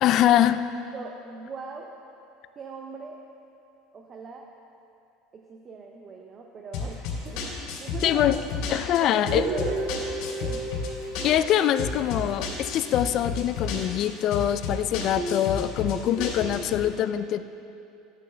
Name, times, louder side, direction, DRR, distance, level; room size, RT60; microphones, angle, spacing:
voice 1, 0.0-0.6 8.0-8.4 8.7-9.5 11.2-17.4, left 11 dB, 45° left, 12 dB, 0.3 m, -23 dB
voice 2, 0.9-1.9 2.6-3.2 3.9-4.5 5.3-8.4 9.0-9.8 10.4-10.7 15.2-15.5 15.9-16.7, right 3 dB, 30° right, 1 dB, 0.6 m, -39 dB
sound 1, 6.7-16.8, left 4 dB, 70° left, 2.4 m, -33 dB
Guitar, 9.3-13.1, right 2 dB, 50° right, 2.2 m, -33 dB
11.5 x 8.4 x 3.4 m, 2.7 s
supercardioid pair, 135°, 0 cm